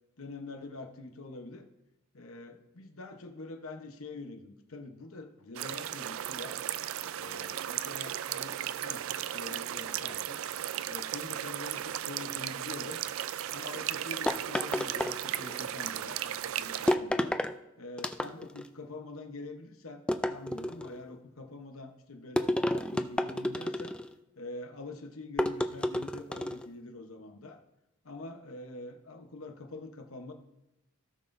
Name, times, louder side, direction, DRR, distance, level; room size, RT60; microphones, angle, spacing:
voice 1, 0.2-1.7 2.1-6.6 7.1-10.4 10.8-13.0 13.5-17.4 17.8-20.0 20.3-23.9 24.4-27.6 28.0-30.3, left 2 dB, 85° left, 5 dB, 1.0 m, -45 dB
sound 1, 5.6-17.0, right 11 dB, 70° right, 0.3 m, -36 dB
sound 2, 14.3-15.6 16.9-17.5 18.0-18.7 20.1-21.0 22.4-24.1 25.4-26.7, left 1 dB, 5° left, 0.3 m, -31 dB
17.0 x 5.9 x 2.6 m, 0.92 s
head